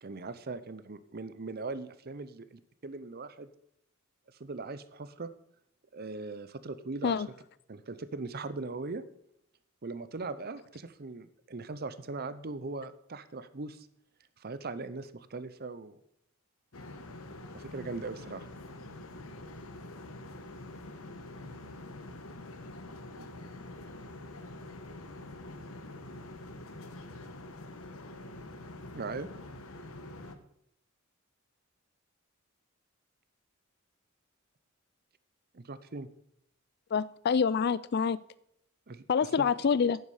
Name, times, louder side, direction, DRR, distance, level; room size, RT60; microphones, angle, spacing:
voice 1, 0.0-3.5 4.4-5.3 5.9-7.2 7.7-9.0 9.8-13.9 14.4-16.0 17.5-18.5 23.2-23.3 28.9-29.3 35.5-36.1 38.9-39.5, right 3 dB, 50° right, 14 dB, 0.7 m, -40 dB
sound 1, 16.7-30.4, left 2 dB, 85° left, 1.2 m, -45 dB
voice 2, 36.9-38.2 39.1-40.0, left 6 dB, 50° left, 19 dB, 0.4 m, -26 dB
11.0 x 9.5 x 5.0 m, 0.74 s
head